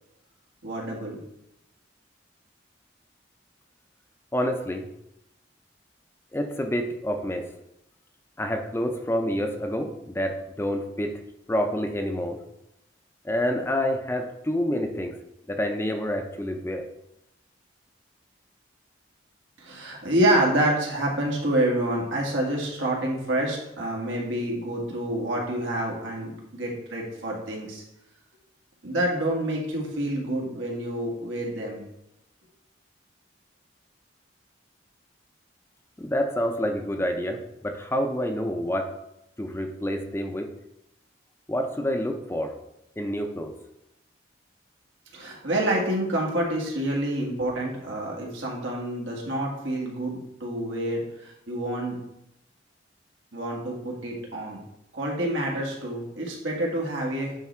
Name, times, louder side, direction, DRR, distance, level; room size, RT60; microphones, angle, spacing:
voice 1, 0.6-1.2 19.6-27.8 28.8-31.8 45.1-52.0 53.3-54.6 54.9-57.3, right 1 dB, 85° right, -2 dB, 1.9 m, -27 dB
voice 2, 4.3-4.9 6.3-7.5 8.4-11.2 11.5-12.4 13.2-15.2 15.5-16.8 36.0-38.9 39.4-40.5 41.5-42.5 43.0-43.6, equal, 15° left, 5 dB, 0.5 m, -28 dB
9.3 x 3.4 x 4.4 m, 0.83 s
head